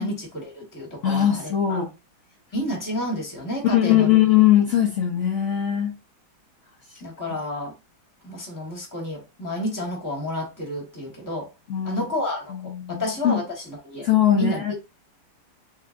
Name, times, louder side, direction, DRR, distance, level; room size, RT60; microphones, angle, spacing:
voice 1, 0.0-1.8 2.5-4.1 7.0-7.7 8.2-11.5 11.8-14.1 14.3-14.7, left 1 dB, 10° left, 1.0 m, -30 dB
voice 2, 1.0-1.9 3.6-5.9 11.7-12.1 12.5-13.4 14.0-14.7, left 11 dB, 70° left, 0.7 m, -20 dB
3.7 x 3.2 x 2.5 m
omnidirectional pair, 2.1 m